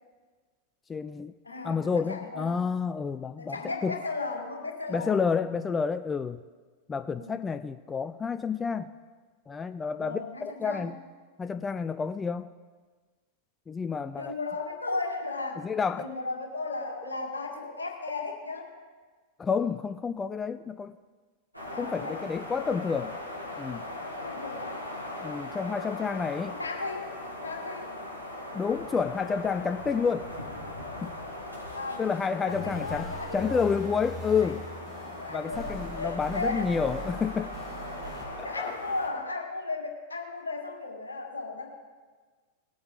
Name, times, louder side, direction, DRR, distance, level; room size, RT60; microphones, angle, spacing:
voice 1, 0.9-1.3 1.6-3.6 3.8-3.9 4.9-6.4 6.9-8.9 9.5-11.0 11.4-12.5 13.7-14.4 15.6-16.1 19.4-20.9 21.8-23.2 23.6-23.9 25.2-26.6 28.5-30.3 31.0-31.1 32.0-33.1 33.3-34.7 35.3-37.6 38.6-38.7, left 5 dB, 15° left, 0.3 m, -29 dB
voice 2, 1.4-2.7 3.4-5.2 7.1-7.4 10.0-10.9 14.2-15.6 16.0-18.7 21.7-22.2 24.1-24.8 26.5-27.1 27.4-27.9 31.7-32.0 32.5-33.7 34.3-34.5 35.2-36.9 38.0-41.7, left 3 dB, 75° left, 1.9 m, -35 dB
sound 1, 21.5-39.1, left 1 dB, 90° right, 1.8 m, -40 dB
sound 2, 32.5-38.3, equal, ahead, 2.9 m, -41 dB
19.5 x 8.5 x 3.9 m
figure-of-eight pair, 90°, 0 cm